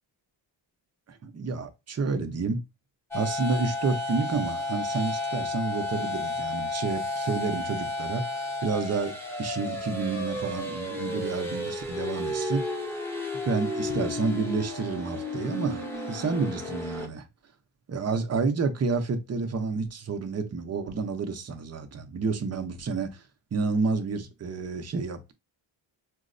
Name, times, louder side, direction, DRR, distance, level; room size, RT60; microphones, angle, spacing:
voice 1, 1.1-2.6 3.1-12.6 13.5-17.3 17.9-23.2 23.5-25.3, right 4 dB, 30° right, 0.5 m, -30 dB
sound 1, 3.1-17.1, left 2 dB, 5° left, 0.8 m, -32 dB
4.5 x 2.0 x 2.5 m
cardioid pair, 90°, 49 cm